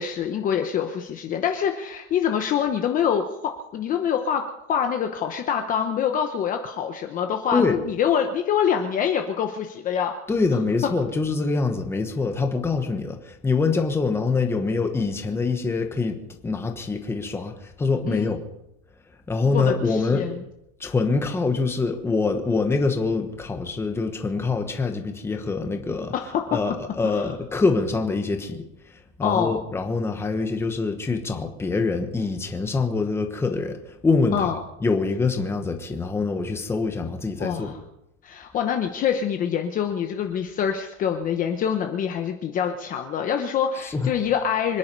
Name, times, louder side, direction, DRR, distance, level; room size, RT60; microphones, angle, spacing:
voice 1, 0.0-4.4 4.7-10.1 18.1-18.3 19.5-20.4 26.1-26.6 27.0-27.3 29.2-29.6 34.3-34.5 37.4-37.8 38.2-44.8, left 8 dB, 25° left, 5 dB, 0.9 m, -25 dB
voice 2, 10.3-16.2 16.4-18.4 19.3-20.3 20.8-26.1 26.5-34.5 34.8-37.8 43.8-44.1, left 4 dB, 5° left, 5 dB, 1.2 m, -25 dB
25.5 x 10.5 x 5.4 m, 0.85 s
cardioid pair, 180°, 34 cm